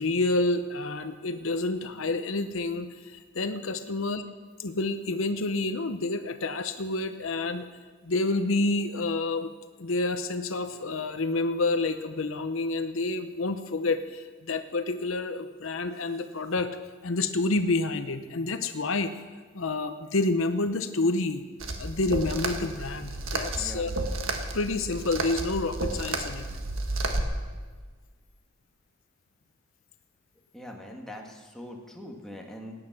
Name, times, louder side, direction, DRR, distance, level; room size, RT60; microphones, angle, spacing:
voice 1, 0.0-4.2 4.6-7.7 8.0-9.5 9.8-16.7 17.0-19.1 19.5-21.4 21.8-23.9 24.5-26.5, left 2 dB, 70° left, 9 dB, 0.8 m, -28 dB
sound 1, 21.6-27.2, right 2 dB, 75° right, 1.6 m, -32 dB
voice 2, 30.5-32.7, equal, ahead, 0 dB, 1.6 m, -42 dB
17.0 x 9.8 x 5.9 m, 1.5 s
head